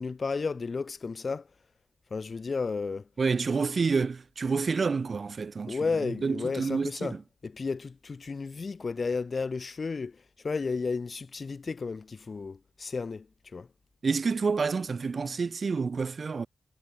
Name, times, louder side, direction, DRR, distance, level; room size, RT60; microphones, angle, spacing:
voice 1, 0.0-1.5 2.1-3.1 5.7-7.2 7.4-13.3 13.5-13.7, left 4 dB, 35° left, 0.5 m, -33 dB
voice 2, 3.2-5.8 6.2-7.2 14.0-16.5, right 5 dB, 40° right, 0.4 m, -28 dB
wide cardioid pair, 175°, 0 cm